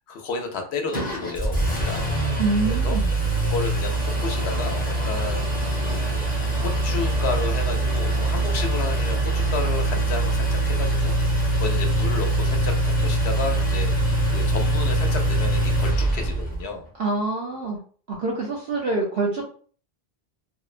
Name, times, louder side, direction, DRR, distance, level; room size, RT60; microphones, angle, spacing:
voice 1, 0.1-2.1 2.7-3.0 3.5-6.3 6.6-12.7 13.0-16.9, left 4 dB, 75° left, 4 dB, 0.8 m, -32 dB
Engine, 0.9-16.6, right 1 dB, 10° left, 0.6 m, -23 dB
voice 2, 2.4-3.1 17.0-17.8 18.1-19.5, right 3 dB, 70° right, -2 dB, 0.8 m, -25 dB
sound 1, 3.6-10.5, right 2 dB, 45° right, 0.4 m, -39 dB
2.6 x 2.1 x 2.4 m, 0.44 s
omnidirectional pair, 1.1 m